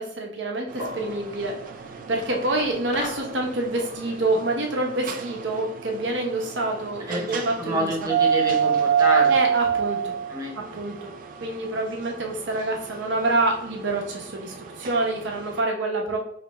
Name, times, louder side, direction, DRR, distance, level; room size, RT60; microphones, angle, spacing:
voice 1, 0.0-1.6 2.1-8.1 9.3-10.1 10.5-11.1 11.4-16.2, right 2 dB, 75° right, 1 dB, 0.9 m, -27 dB
sound 1, 0.7-15.6, right 7 dB, 50° right, 0.4 m, -29 dB
sound 2, 0.8-9.1, left 1 dB, 65° left, 0.9 m, -46 dB
sound 3, 2.6-3.3, left 3 dB, 40° left, 0.5 m, -36 dB
voice 2, 7.1-9.3 10.3-10.6, right 1 dB, 20° right, -1 dB, 1.0 m, -28 dB
4.5 x 3.3 x 3.1 m, 0.71 s
head